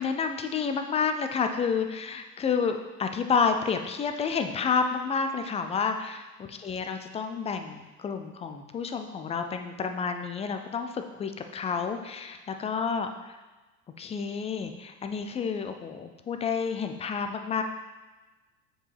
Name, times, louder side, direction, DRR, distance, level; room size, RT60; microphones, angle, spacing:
voice 1, 0.0-13.4 14.0-17.6, left 5 dB, 15° left, 6 dB, 0.3 m, -30 dB
7.4 x 4.8 x 3.3 m, 1.2 s
hypercardioid pair, 80°, 46 cm